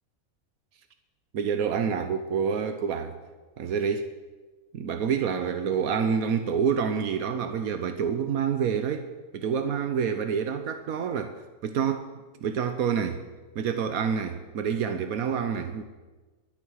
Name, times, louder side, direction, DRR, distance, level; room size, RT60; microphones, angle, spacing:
voice 1, 1.3-3.2 3.6-4.1 4.7-11.4 11.6-12.1 12.4-13.2 13.5-15.8, right 7 dB, 85° right, 1.3 m, -27 dB
22.5 x 8.7 x 6.4 m
omnidirectional pair, 1.5 m